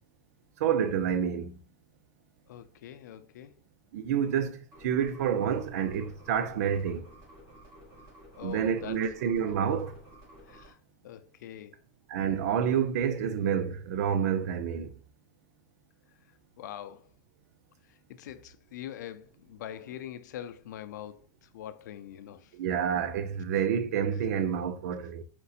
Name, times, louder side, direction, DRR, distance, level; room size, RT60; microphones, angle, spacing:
voice 1, 0.6-1.6 3.9-7.1 8.4-9.9 12.1-14.9 22.5-25.2, right 8 dB, 65° right, 0.6 m, -28 dB
voice 2, 2.5-3.5 8.4-9.0 10.5-10.8 11.0-11.7 16.6-17.1 18.1-22.5, left 11 dB, 85° left, 0.5 m, -43 dB
sound 1, 4.7-10.7, equal, 30° right, 2.1 m, -53 dB
4.4 x 4.1 x 2.5 m
supercardioid pair, 160°, 9 cm